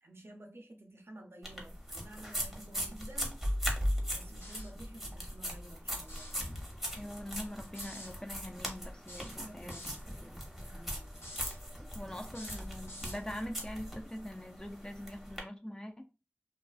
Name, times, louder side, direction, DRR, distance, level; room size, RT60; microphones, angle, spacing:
voice 1, 0.0-3.4 4.1-6.6 9.2-10.0 10.3-11.3, right 1 dB, 65° right, 0.5 m, -52 dB
sound 1, 1.4-15.4, equal, 5° right, 0.7 m, -39 dB
sound 2, 4.4-4.8 6.0-6.4 7.7-8.1 9.1-10.0 11.1-11.6 12.3-13.2, left 1 dB, 70° left, 0.9 m, -49 dB
voice 2, 7.0-9.8 10.2-10.4 11.9-16.0, equal, 15° left, 0.4 m, -43 dB
2.4 x 2.3 x 2.3 m
wide cardioid pair, 50°, 5 cm